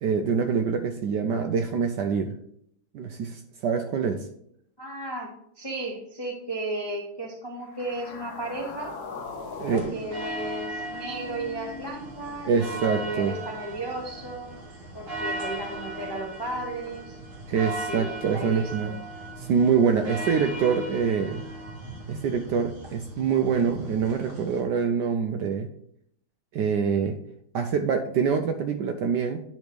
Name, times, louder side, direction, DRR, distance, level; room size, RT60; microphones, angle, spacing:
voice 1, 0.0-2.3 2.9-4.3 9.6-9.9 12.4-13.3 17.5-18.9 19.4-21.4 22.1-25.7 26.5-27.2 27.5-29.4, right 6 dB, 75° right, 6 dB, 1.0 m, -25 dB
voice 2, 4.8-8.9 9.7-14.5 14.9-17.2 17.8-19.0, right 2 dB, 35° left, -1 dB, 0.4 m, -34 dB
sound 1, 7.6-12.0, left 4 dB, 60° left, 1.2 m, -40 dB
sound 2, 9.8-24.6, right 1 dB, 40° right, 1.6 m, -37 dB
9.3 x 3.1 x 5.0 m, 0.71 s
omnidirectional pair, 2.3 m